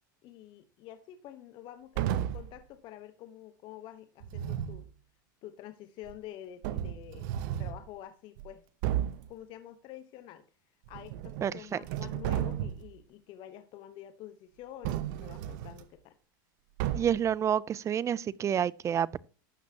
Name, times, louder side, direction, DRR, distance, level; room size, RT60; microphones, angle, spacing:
voice 1, 0.2-4.9 5.4-7.3 7.6-8.6 9.3-10.4 10.9-16.1, left 12 dB, 50° left, 1.2 m, -48 dB
sound 1, 1.9-2.6 4.2-4.8 6.1-6.2 6.6-7.8 8.4-8.5 8.8-9.3 10.9-11.5 11.8-12.9 14.8-15.8 16.8-17.3, right 11 dB, 65° right, 0.9 m, -33 dB
voice 2, 11.4-11.8 16.9-19.2, right 9 dB, 25° right, 0.5 m, -29 dB
12.5 x 8.2 x 2.9 m
hypercardioid pair, 110°, 11 cm